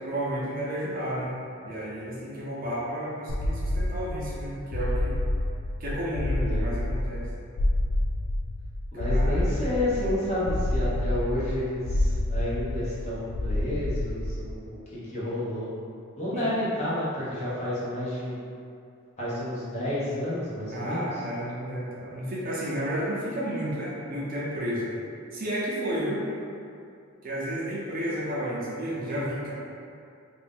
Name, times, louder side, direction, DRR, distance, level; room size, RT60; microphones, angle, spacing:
voice 1, 0.0-1.3 1.6-5.2 5.8-7.3 8.9-9.6 16.3-16.5 20.7-24.9 25.3-26.3 27.2-29.5, equal, 45° right, -7 dB, 0.7 m, -32 dB
sound 1, 3.3-14.6, left 1 dB, 85° left, 0.4 m, -28 dB
voice 2, 8.9-14.8 15.1-15.7 16.2-18.4 19.2-21.1, left 1 dB, 35° left, -10 dB, 0.9 m, -30 dB
2.7 x 2.5 x 3.5 m, 2.5 s
head